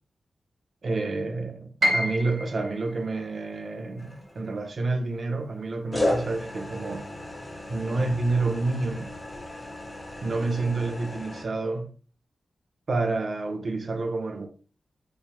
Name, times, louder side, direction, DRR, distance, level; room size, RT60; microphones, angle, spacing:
voice 1, 0.8-7.1 7.7-9.1 10.2-11.9 12.9-14.5, right 3 dB, 50° right, 0.6 m, -29 dB
Piano, 1.8-7.7 8.1-9.2 9.6-9.7 10.4-10.8, equal, 70° right, 1.1 m, -33 dB
sound 1, 4.0-4.6 5.9-11.5, left 1 dB, 20° left, 0.6 m, -34 dB
4.3 x 2.1 x 3.2 m
wide cardioid pair, 145°, 0 cm